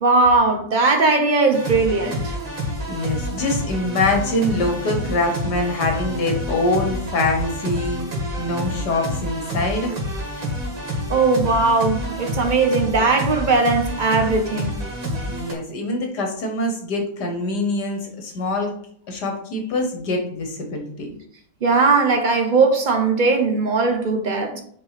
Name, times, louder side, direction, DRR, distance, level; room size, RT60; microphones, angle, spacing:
voice 1, 0.0-2.3 11.1-14.8 21.6-24.6, right 3 dB, 55° right, 0.5 m, -19 dB
sound 1, 1.5-15.5, equal, 80° right, 2.6 m, -28 dB
voice 2, 2.9-8.0 8.4-10.0 15.3-18.7 19.1-21.2, left 2 dB, 60° left, 1.7 m, -24 dB
5.7 x 4.5 x 5.8 m
omnidirectional pair, 2.1 m